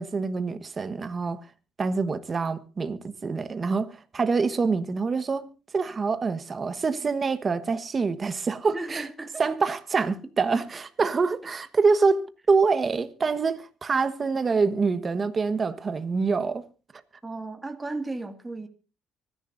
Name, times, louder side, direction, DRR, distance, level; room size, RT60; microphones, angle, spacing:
voice 1, 0.0-1.4 1.8-9.0 9.4-16.6, right 4 dB, 35° right, 1.3 m, -26 dB
voice 2, 8.7-9.5 17.2-18.7, right 2 dB, 20° right, 2.1 m, -35 dB
25.0 x 11.0 x 2.6 m
supercardioid pair, 75°, 0 cm